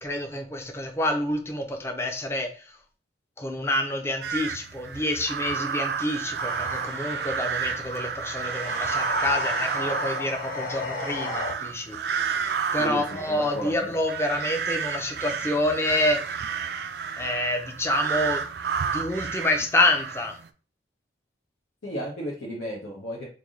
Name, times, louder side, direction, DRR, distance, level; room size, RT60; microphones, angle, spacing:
voice 1, 0.0-2.5 3.4-16.2 17.2-18.4 18.9-20.4, left 1 dB, 15° left, 4 dB, 0.5 m, -27 dB
sound 1, 4.2-20.5, right 6 dB, 55° right, 0.3 m, -31 dB
sound 2, 6.4-11.5, left 3 dB, 50° left, 0.7 m, -34 dB
voice 2, 12.8-13.9 21.8-23.3, equal, 80° left, -4 dB, 1.0 m, -34 dB
3.4 x 2.6 x 3.7 m, 0.38 s
head